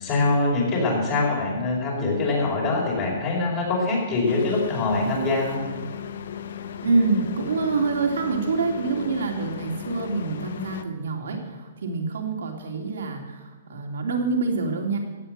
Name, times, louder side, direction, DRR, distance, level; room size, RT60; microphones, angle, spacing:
voice 1, 0.0-5.6, left 2 dB, 30° left, -3 dB, 5.0 m, -23 dB
sound 1, 4.3-10.8, left 8 dB, 65° left, 0.9 m, -36 dB
voice 2, 6.8-15.0, right 4 dB, 80° right, 2 dB, 3.2 m, -26 dB
15.5 x 8.8 x 7.6 m, 1.4 s
hypercardioid pair, 155°, 0 cm